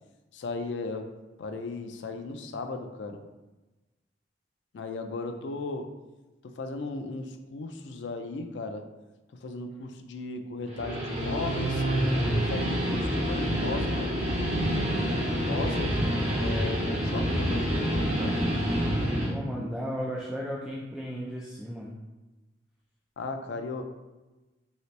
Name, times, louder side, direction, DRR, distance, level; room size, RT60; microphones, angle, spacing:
voice 1, 0.3-1.1 1.4-3.2 4.7-5.9 6.5-8.9 9.4-11.8 12.2-15.9 16.4-18.4 23.2-23.8, left 3 dB, 75° left, 6 dB, 0.4 m, -36 dB
Guitar, 10.6-19.3, equal, 35° right, 0.9 m, -27 dB
voice 2, 19.2-21.9, equal, 5° right, -5 dB, 0.3 m, -35 dB
3.2 x 2.7 x 3.1 m, 1.1 s
head